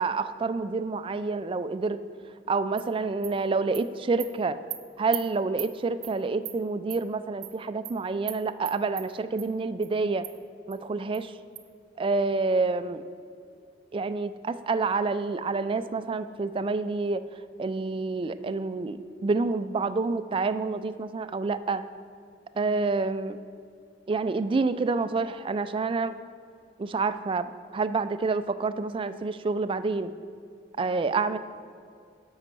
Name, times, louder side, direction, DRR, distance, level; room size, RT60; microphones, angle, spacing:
voice 1, 0.0-2.0 2.5-4.6 5.0-10.3 10.7-11.4 12.0-13.0 13.9-17.2 17.6-21.8 22.6-23.4 24.1-26.1 26.8-30.1 30.8-31.4, right 3 dB, 30° right, 12 dB, 0.3 m, -28 dB
Animal, 2.8-2.9 3.2-3.3 3.7-3.8 4.2-4.3 4.7-4.8 5.1-5.2 5.6-5.7 6.0-6.1 6.4-6.6 6.9-7.0 7.4-7.5 7.8-7.9 8.3-8.4 8.6-9.1 9.4-9.5 9.8-9.9 10.2-10.3 10.7-10.8 11.1-11.2 11.6-11.7, right 14 dB, 70° right, 0.7 m, -36 dB
11.0 x 5.6 x 6.0 m, 2.3 s
head